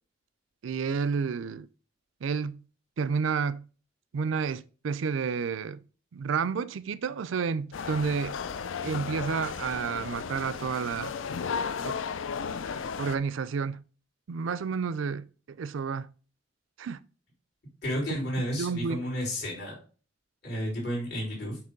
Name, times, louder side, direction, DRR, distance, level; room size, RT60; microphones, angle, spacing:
voice 1, 0.6-1.7 2.2-2.6 3.0-3.6 4.1-5.8 6.1-8.4 8.8-11.1 11.8-12.0 13.0-13.8 14.3-15.3 15.6-16.1 16.8-17.0 18.1-18.2 18.5-19.1, right 5 dB, 75° right, 0.4 m, -30 dB
sound 1, 7.7-13.2, left 6 dB, 75° left, 0.5 m, -34 dB
voice 2, 17.8-19.8 20.4-21.6, equal, 55° left, 4.0 m, -32 dB
8.0 x 3.0 x 5.2 m
head